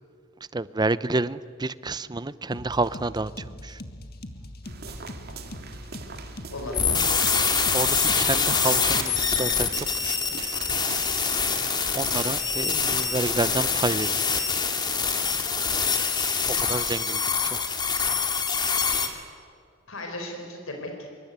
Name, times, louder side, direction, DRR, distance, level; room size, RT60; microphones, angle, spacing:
voice 1, 0.5-3.8 7.7-10.6 11.9-14.5 16.5-17.6, right 2 dB, 20° right, 17 dB, 0.6 m, -29 dB
sound 1, 2.5-9.4, left 1 dB, 50° left, 1.8 m, -41 dB
sound 2, 4.6-13.6, right 4 dB, 50° right, 2.2 m, -42 dB
voice 2, 6.5-7.3 19.9-21.2, left 1 dB, 85° left, 3 dB, 4.5 m, -36 dB
sound 3, 6.7-19.1, left 5 dB, 20° left, 2.3 m, -25 dB
25.5 x 24.0 x 9.5 m, 2.1 s
head